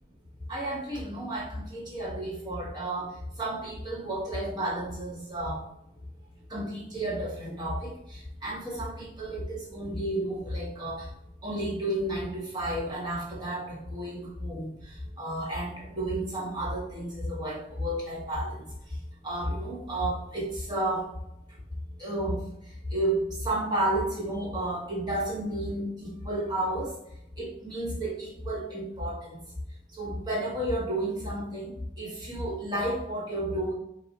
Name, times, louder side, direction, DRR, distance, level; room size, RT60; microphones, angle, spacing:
voice 1, 0.5-5.6 6.5-11.1 11.4-18.7 19.2-21.1 22.0-22.5 22.9-26.9 27.4-29.4 29.9-33.7, right 1 dB, 25° right, -4 dB, 1.2 m, -32 dB
4.7 x 2.3 x 4.1 m, 0.81 s
head